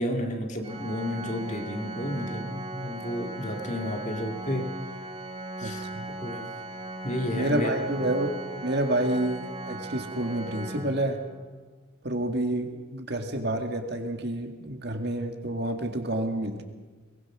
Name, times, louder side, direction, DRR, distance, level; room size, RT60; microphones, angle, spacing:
voice 1, 0.0-4.8 5.6-6.5 7.0-7.7 8.1-8.2, left 1 dB, 35° left, 4 dB, 2.2 m, -32 dB
Organ, 0.6-11.5, right 2 dB, 25° right, 1.5 m, -38 dB
voice 2, 5.6-6.1 7.3-11.2 12.0-16.6, right 1 dB, 55° right, 5 dB, 2.0 m, -29 dB
22.5 x 20.0 x 6.2 m, 1.3 s
head